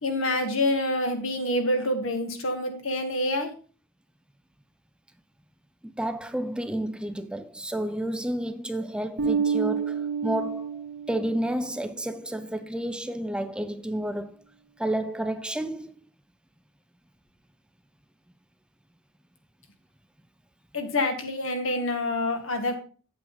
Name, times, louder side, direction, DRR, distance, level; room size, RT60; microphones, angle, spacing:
voice 1, 0.0-3.5 20.7-22.7, left 1 dB, 70° left, 1.7 m, -27 dB
voice 2, 5.8-14.4 14.8-16.0, right 1 dB, 5° right, 0.3 m, -31 dB
Bass guitar, 9.2-11.6, right 6 dB, 65° right, 1.4 m, -28 dB
8.5 x 7.5 x 3.8 m
head